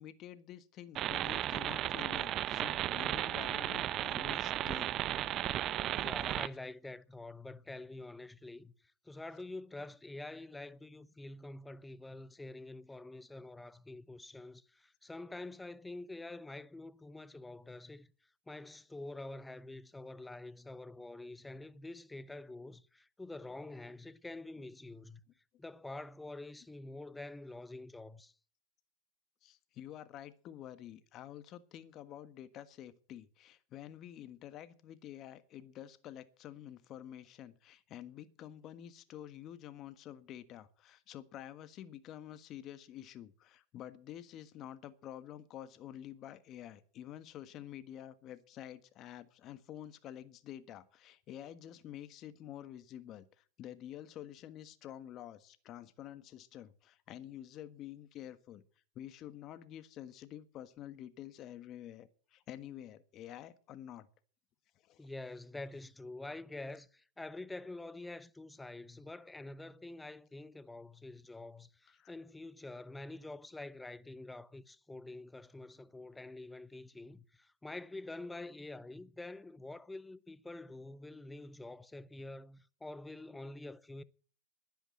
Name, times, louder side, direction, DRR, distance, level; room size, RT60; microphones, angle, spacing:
voice 1, 0.0-5.0 5.5-5.7 29.4-53.3 53.6-58.6 58.9-64.1 64.8-65.1 71.9-72.1, left 11 dB, 40° left, 1.4 m, -49 dB
sound 1, 1.0-6.5, right 12 dB, 40° right, 0.6 m, -35 dB
voice 2, 5.9-8.7 9.0-18.1 18.5-25.2 25.6-28.3 65.0-84.0, left 2 dB, 10° left, 0.8 m, -47 dB
11.5 x 10.0 x 7.8 m
hypercardioid pair, 110°, 0 cm